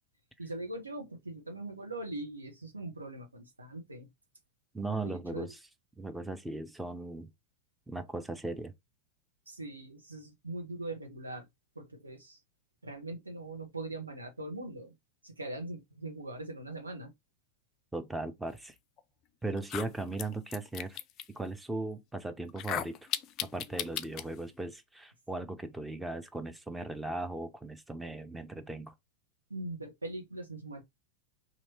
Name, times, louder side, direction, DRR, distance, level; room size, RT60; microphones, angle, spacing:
voice 1, 0.4-4.1 5.0-5.5 9.5-11.5 11.7-12.4 12.8-14.9 15.2-17.1 29.5-30.8, right 2 dB, 80° right, 1.0 m, -41 dB
voice 2, 4.7-5.6 6.0-7.3 7.9-8.7 17.9-18.7 19.4-21.0 21.3-23.0 23.5-28.9, right 2 dB, 5° right, 0.6 m, -38 dB
sound 1, 19.0-19.1 19.6-21.3 22.5-24.3, left 11 dB, 35° left, 0.4 m, -36 dB
3.1 x 2.8 x 4.3 m
figure-of-eight pair, 90°, 0 cm